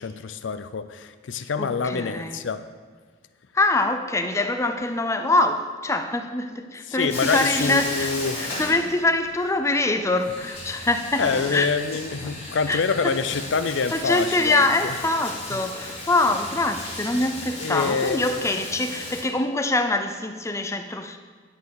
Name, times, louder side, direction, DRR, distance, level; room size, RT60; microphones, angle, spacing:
voice 1, 0.0-2.6 6.9-8.4 11.2-14.9 17.6-18.6, left 5 dB, 75° left, 12 dB, 0.5 m, -26 dB
voice 2, 1.6-2.4 3.5-11.7 12.7-13.2 13.9-21.2, left 2 dB, 15° left, 7 dB, 0.5 m, -24 dB
Bathtub (filling or washing), 7.1-9.4 9.6-9.7 10.2-19.2, left 2 dB, 30° left, 2.5 m, -35 dB
11.5 x 4.6 x 6.3 m, 1.5 s
head